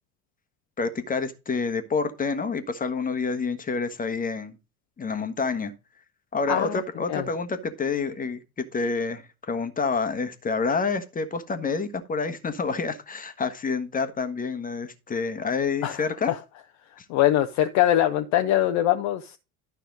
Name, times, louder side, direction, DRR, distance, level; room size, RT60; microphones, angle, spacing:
voice 1, 0.8-4.5 5.0-5.7 6.3-16.3 17.0-17.1, left 4 dB, 20° left, 1.2 m, -28 dB
voice 2, 6.5-6.8 7.1-7.3 15.8-16.4 17.1-19.4, left 13 dB, 40° left, 0.7 m, -23 dB
12.0 x 5.6 x 3.8 m
figure-of-eight pair, 65°, 43 cm